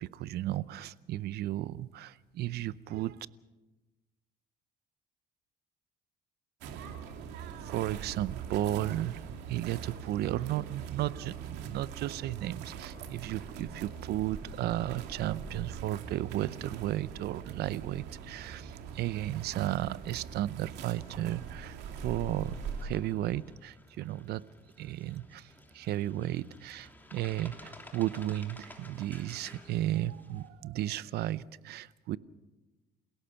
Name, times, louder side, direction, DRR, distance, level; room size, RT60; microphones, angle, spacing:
voice 1, 0.0-3.3 7.5-9.2 9.5-22.5 22.8-24.4 24.8-32.2, right 14 dB, 70° right, 18 dB, 0.7 m, -34 dB
sound 1, 6.6-22.8, right 7 dB, 90° right, 2.6 m, -42 dB
sound 2, 19.0-30.5, left 1 dB, 10° left, 3.1 m, -55 dB
28.5 x 17.0 x 5.8 m, 1.1 s
cardioid pair, 110°, 17 cm